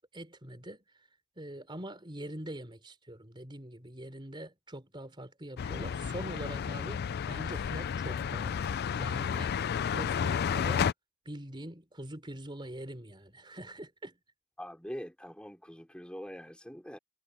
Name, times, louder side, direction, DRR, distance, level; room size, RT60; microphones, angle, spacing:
voice 1, 0.1-0.8 1.4-8.7 9.0-9.6 9.9-10.9 11.3-14.2, right 1 dB, 20° right, 3.6 m, -43 dB
sound 1, 5.6-10.9, left 7 dB, 45° left, 0.3 m, -32 dB
voice 2, 14.6-17.0, equal, 5° left, 3.7 m, -43 dB
head